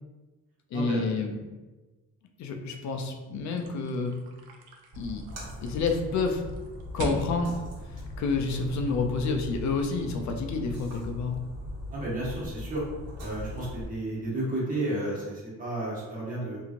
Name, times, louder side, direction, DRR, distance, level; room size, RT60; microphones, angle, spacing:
voice 1, 0.7-1.3 2.4-4.1 5.0-5.2 5.6-6.4 6.9-11.4, left 4 dB, 55° left, 4 dB, 0.5 m, -29 dB
sound 1, 3.6-8.9, right 2 dB, 90° right, 0.6 m, -42 dB
Splash splatter, 4.9-13.8, left 1 dB, 45° right, 1.2 m, -40 dB
voice 2, 11.9-12.8 13.2-16.6, right 1 dB, 25° right, -6 dB, 1.1 m, -32 dB
2.8 x 2.7 x 2.5 m, 1.2 s
cardioid pair, 100°, 35 cm